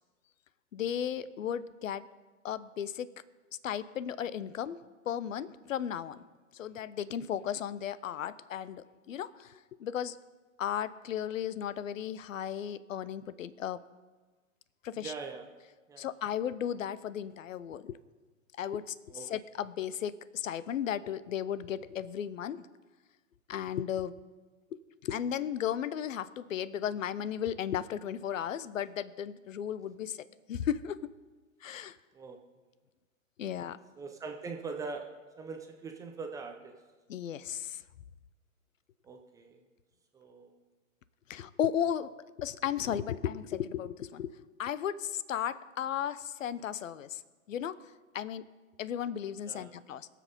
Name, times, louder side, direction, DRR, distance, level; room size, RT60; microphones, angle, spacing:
voice 1, 0.7-2.1 2.4-3.1 3.6-4.8 5.1-6.2 6.5-9.5 9.8-10.2 10.6-13.8 14.8-15.1 16.0-18.0 18.6-22.7 23.5-24.1 24.7-31.0 31.6-31.9 33.4-33.8 37.1-37.8 41.3-42.1 42.4-44.3 44.6-47.2 47.5-47.8 48.1-48.4 48.8-50.1, left 9 dB, 65° left, 17 dB, 0.8 m, -35 dB
voice 2, 15.0-15.5 15.9-16.1 19.1-19.3 32.1-32.4 33.5-33.6 34.0-35.1 35.4-36.7 39.0-39.6 40.1-40.6 49.4-49.7, right 4 dB, 10° right, 3 dB, 0.5 m, -42 dB
21.5 x 7.7 x 5.3 m, 1.3 s
hypercardioid pair, 120°, 42 cm